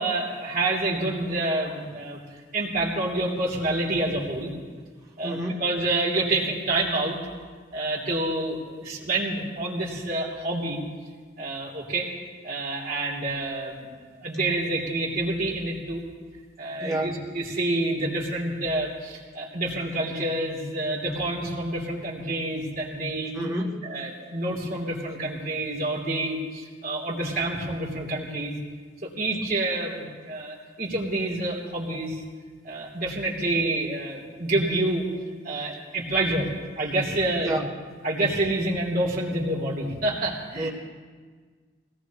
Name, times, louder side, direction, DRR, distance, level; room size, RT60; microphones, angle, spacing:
voice 1, 0.0-2.2 2.5-4.5 5.2-7.2 7.7-10.8 11.4-12.1 12.4-16.0 16.6-23.3 23.8-28.5 29.0-32.2 32.6-35.1 35.4-36.5 36.8-37.6 38.0-40.7, right 2 dB, 50° right, -4 dB, 3.1 m, -28 dB
voice 2, 5.2-5.6 16.8-17.1 23.3-23.8 37.4-37.6 40.6-40.7, right 1 dB, 20° right, -3 dB, 1.4 m, -28 dB
24.0 x 18.0 x 3.1 m, 1.5 s
head